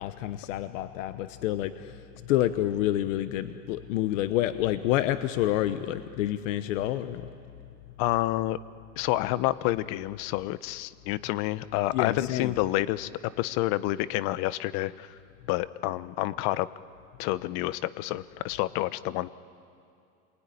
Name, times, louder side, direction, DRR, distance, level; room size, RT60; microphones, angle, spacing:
voice 1, 0.0-2.0 2.2-7.2 11.9-12.6, left 13 dB, 85° left, 12 dB, 1.1 m, -28 dB
voice 2, 8.0-8.6 9.0-15.2 15.5-16.7 17.2-19.3, left 16 dB, 65° left, 17 dB, 1.0 m, -29 dB
27.5 x 22.0 x 9.9 m, 2.6 s
supercardioid pair, 125°, 37 cm